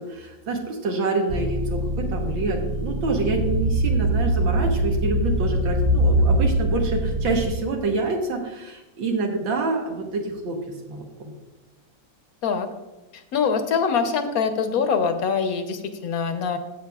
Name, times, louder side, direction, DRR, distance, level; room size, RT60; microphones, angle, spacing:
voice 1, 0.0-10.6 10.9-11.3, right 3 dB, 80° right, 1 dB, 1.9 m, -27 dB
sound 1, 1.3-7.5, right 1 dB, 45° right, 0.9 m, -23 dB
voice 2, 13.1-16.6, left 6 dB, 60° left, 8 dB, 1.1 m, -24 dB
14.5 x 7.9 x 2.4 m, 1.1 s
omnidirectional pair, 2.1 m